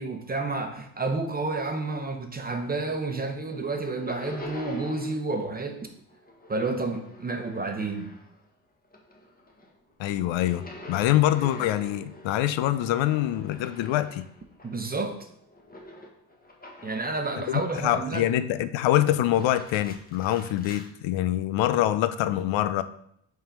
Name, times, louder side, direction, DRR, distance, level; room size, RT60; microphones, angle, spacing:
voice 1, 0.0-5.9 6.5-8.1 14.6-15.2 16.8-18.3, right 3 dB, 20° right, 5 dB, 0.9 m, -30 dB
sound 1, 2.3-3.0 3.3-5.3 5.6-8.5 8.8-17.2 17.7-18.3 19.2-20.9, left 1 dB, 20° left, 1.3 m, -46 dB
voice 2, 10.0-14.2 17.5-22.8, left 13 dB, 70° left, 12 dB, 0.6 m, -25 dB
5.5 x 3.7 x 5.0 m, 0.71 s
supercardioid pair, 80°, 47 cm